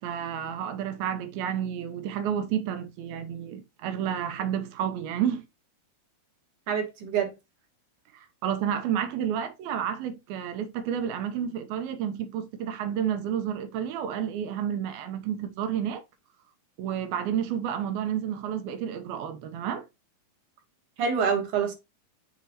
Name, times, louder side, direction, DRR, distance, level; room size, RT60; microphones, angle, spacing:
voice 1, 0.0-5.4 8.4-16.0 16.8-19.9, right 9 dB, 85° right, 2.7 m, -30 dB
voice 2, 6.7-7.3 21.0-21.7, right 7 dB, 60° right, 2.8 m, -26 dB
6.8 x 4.8 x 2.9 m
omnidirectional pair, 4.3 m